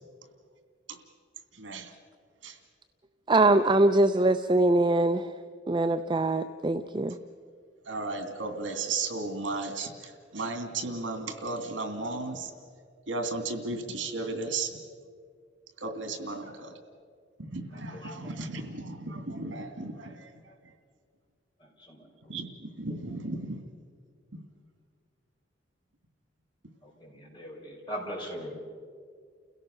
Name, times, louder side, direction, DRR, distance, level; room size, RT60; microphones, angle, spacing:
voice 1, 1.5-1.9 2.4-2.6 7.8-12.5 13.1-14.7 15.8-16.7 17.4-20.7 22.3-23.6, right 3 dB, 80° right, 6 dB, 2.6 m, -35 dB
voice 2, 3.3-5.4 5.7-7.2, right 2 dB, 25° right, 8 dB, 0.5 m, -23 dB
voice 3, 27.0-28.6, equal, 25° left, -2 dB, 5.4 m, -39 dB
30.0 x 16.5 x 6.6 m, 2.1 s
head